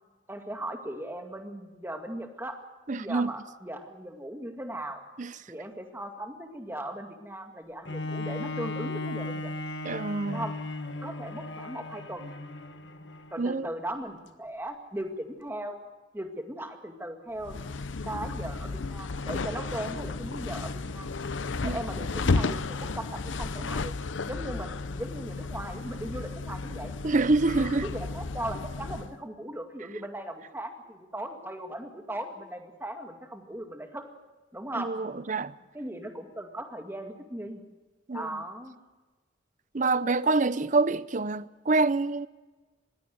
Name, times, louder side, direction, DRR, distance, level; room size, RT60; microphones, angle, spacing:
voice 1, 0.3-2.6 2.9-5.0 5.5-9.5 10.2-10.5 11.0-12.4 13.3-15.8 16.1-17.6 18.0-21.1 21.6-23.9 24.3-27.0 27.7-34.1 34.5-34.9 35.7-37.6 38.1-38.8, right 1 dB, 10° right, 2.1 m, -38 dB
voice 2, 2.9-3.3 5.2-5.3 9.8-10.4 13.4-13.7 21.6-21.8 27.0-27.8 34.8-35.5 38.1-38.3 39.7-42.3, right 3 dB, 40° right, 0.7 m, -26 dB
Bowed string instrument, 7.9-13.5 14.1-14.2, left 2 dB, 65° left, 1.5 m, -36 dB
sound 1, 17.4-29.1, left 3 dB, 85° left, 0.7 m, -33 dB
21.0 x 16.5 x 8.0 m
head